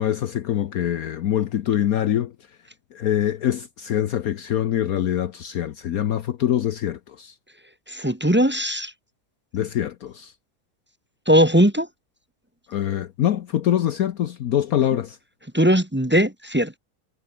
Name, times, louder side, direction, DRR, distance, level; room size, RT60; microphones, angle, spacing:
voice 1, 0.0-2.3 2.9-7.3 9.5-10.3 12.7-15.2, left 11 dB, 65° left, 1.2 m, -24 dB
voice 2, 7.9-8.9 11.3-11.9 15.5-16.8, equal, 5° right, 1.2 m, -19 dB
omnidirectional pair, 1.8 m